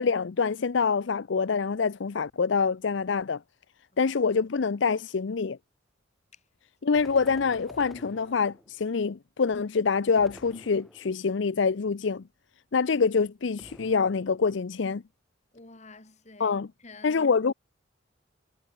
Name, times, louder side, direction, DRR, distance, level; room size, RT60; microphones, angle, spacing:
voice 1, 0.0-3.4 4.0-5.6 6.8-12.2 12.7-15.0 16.4-16.7 17.0-17.5, left 5 dB, 70° left, 0.5 m, -26 dB
sound 1, 6.9-8.9 10.1-11.4 13.6-14.6, equal, ahead, 3.7 m, -50 dB
voice 2, 15.5-17.3, left 3 dB, 35° left, 2.4 m, -51 dB
head